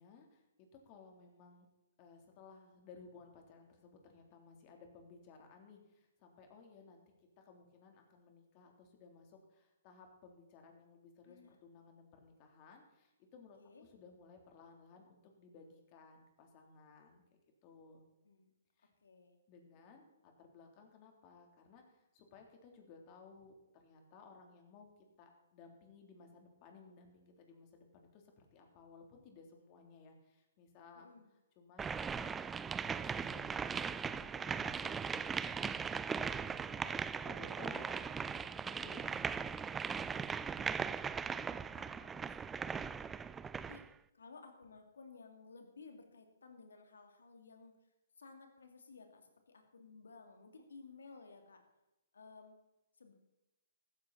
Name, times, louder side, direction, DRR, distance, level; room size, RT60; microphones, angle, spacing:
voice 1, 0.0-1.7 2.0-7.0 7.4-17.2 17.6-18.0 18.8-18.9 19.5-24.9 25.2-31.1 31.6-32.4 32.7-35.7 36.0-39.6, left 4 dB, 35° left, 3 dB, 3.4 m, -59 dB
voice 2, 11.3-11.6 13.6-13.8 18.2-18.5 19.0-19.4 30.9-31.3 40.6-40.7 40.9-43.0 43.5-43.8 44.1-47.7 48.2-51.6 52.1-52.6 53.0-53.1, left 4 dB, 75° left, 5 dB, 2.8 m, -57 dB
sound 1, 31.8-43.9, right 6 dB, 10° right, 0.4 m, -39 dB
15.0 x 13.5 x 4.3 m, 0.98 s
hypercardioid pair, 130°, 0 cm